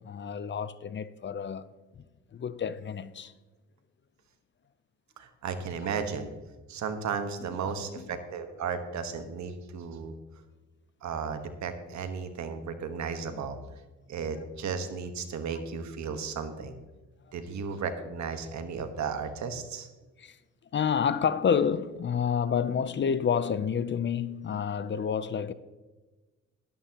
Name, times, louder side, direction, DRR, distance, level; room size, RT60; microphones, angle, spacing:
voice 1, 0.0-1.6 2.3-3.3 8.0-8.1 20.2-20.4 20.7-25.5, left 7 dB, 40° left, 0.5 m, -29 dB
voice 2, 5.2-6.3 6.7-10.1 11.0-13.6 14.1-16.7 17.3-19.9, right 6 dB, 70° right, 1.3 m, -34 dB
12.5 x 11.5 x 2.9 m
cardioid pair, 90°, 30 cm